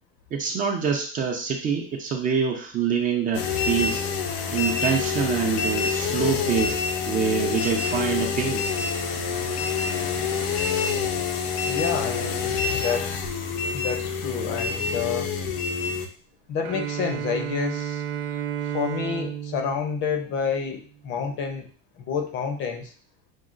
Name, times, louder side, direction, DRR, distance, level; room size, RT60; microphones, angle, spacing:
voice 1, 0.3-4.0 4.5-6.8 7.1-8.6, right 6 dB, 25° right, 2 dB, 0.4 m, -25 dB
sound 1, 3.3-16.1, left 5 dB, 80° left, 0.7 m, -27 dB
voice 2, 11.7-13.3 13.7-15.3 16.5-18.0 18.6-21.7 22.0-22.9, left 6 dB, 40° left, 5 dB, 0.6 m, -29 dB
Bowed string instrument, 16.6-20.7, right 10 dB, 60° right, 0.7 m, -32 dB
6.2 x 2.3 x 2.5 m, 0.41 s
cardioid pair, 155°, 31 cm